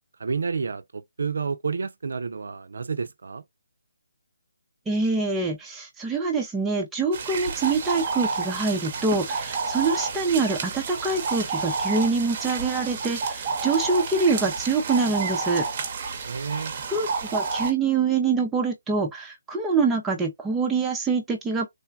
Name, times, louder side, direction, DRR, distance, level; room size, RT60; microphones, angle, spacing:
voice 1, 0.2-3.4 16.2-16.7, right 5 dB, 70° right, 0.4 m, -30 dB
voice 2, 4.9-15.6 16.9-21.7, right 4 dB, 5° right, 0.5 m, -25 dB
sound 1, 7.1-17.7, right 4 dB, 35° right, 0.8 m, -30 dB
3.3 x 2.2 x 2.3 m
hypercardioid pair, 160°, 0 cm